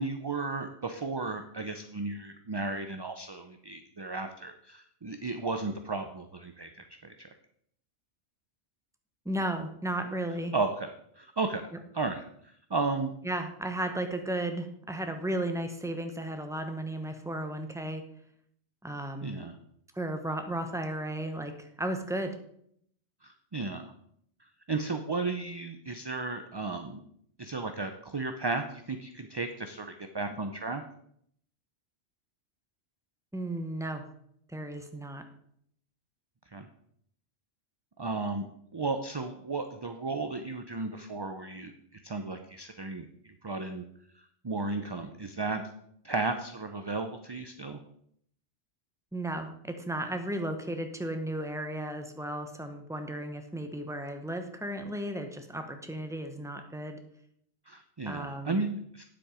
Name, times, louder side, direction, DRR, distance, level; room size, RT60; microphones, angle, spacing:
voice 1, 0.0-6.7 7.0-7.3 10.5-11.6 11.9-12.2 12.7-13.1 19.2-19.5 23.2-23.9 24.7-27.0 27.4-30.8 36.5-36.7 38.0-38.5 38.7-41.7 42.0-43.8 44.4-45.6 46.0-47.8 57.7-59.0, right 3 dB, 30° right, 7 dB, 0.5 m, -34 dB
voice 2, 9.2-10.5 13.2-18.0 18.8-19.4 19.9-22.4 33.3-34.0 34.5-35.2 49.1-57.0 58.0-58.6, right 1 dB, 5° right, 6 dB, 0.9 m, -34 dB
9.4 x 7.7 x 5.0 m, 0.69 s
omnidirectional pair, 1.2 m